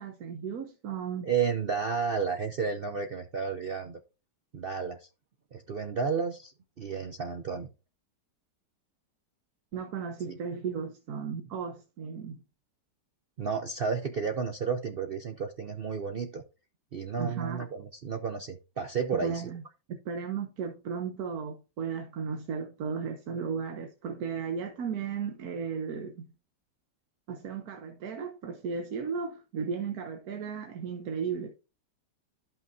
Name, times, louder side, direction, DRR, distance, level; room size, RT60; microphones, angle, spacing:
voice 1, 0.0-1.3 9.7-12.4 17.2-17.6 19.2-19.6 19.9-26.3 27.3-31.5, right 6 dB, 60° right, 1.2 m, -35 dB
voice 2, 1.2-4.0 4.5-5.1 5.5-7.7 10.3-10.4 13.4-16.4 16.9-19.4, right 6 dB, 75° right, 0.5 m, -32 dB
13.0 x 5.7 x 2.6 m
omnidirectional pair, 1.9 m